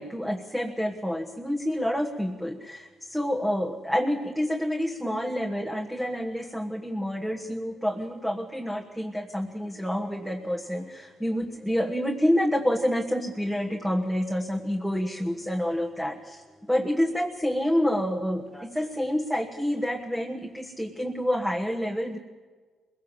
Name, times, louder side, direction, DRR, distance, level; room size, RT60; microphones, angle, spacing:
voice 1, 0.0-16.4 16.7-22.2, equal, 5° right, 1 dB, 1.3 m, -28 dB
21.5 x 17.0 x 7.3 m, 1.4 s
cardioid pair, 90°, 0 cm